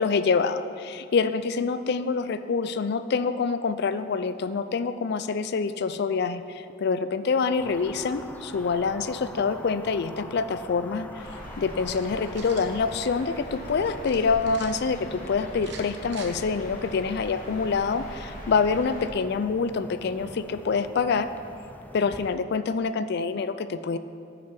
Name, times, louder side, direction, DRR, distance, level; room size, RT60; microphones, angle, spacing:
voice 1, 0.0-11.1 11.6-21.3 21.9-24.0, left 5 dB, 60° left, 12 dB, 0.4 m, -26 dB
sound 1, 7.6-22.3, left 1 dB, 10° left, 0.6 m, -44 dB
sound 2, 11.2-19.1, equal, 45° left, 1.7 m, -42 dB
sound 3, 11.8-12.7 14.0-14.7 15.6-16.3, right 6 dB, 65° right, 1.0 m, -45 dB
9.2 x 6.0 x 5.9 m, 2.4 s
head